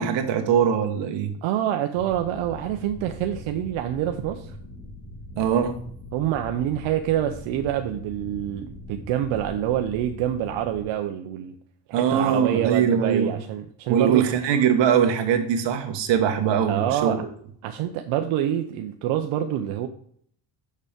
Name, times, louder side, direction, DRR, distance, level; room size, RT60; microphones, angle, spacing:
voice 1, 0.0-1.3 5.3-5.8 11.9-13.4 13.9-17.2, right 8 dB, 60° right, 5 dB, 1.5 m, -22 dB
voice 2, 1.4-4.6 6.1-11.5 11.9-14.3 16.7-17.2 17.6-19.9, right 11 dB, 85° right, 5 dB, 0.8 m, -26 dB
sound 1, 1.9-10.8, left 1 dB, 25° left, 1.8 m, -41 dB
6.7 x 6.2 x 5.1 m, 0.63 s
cardioid pair, 165°, 47 cm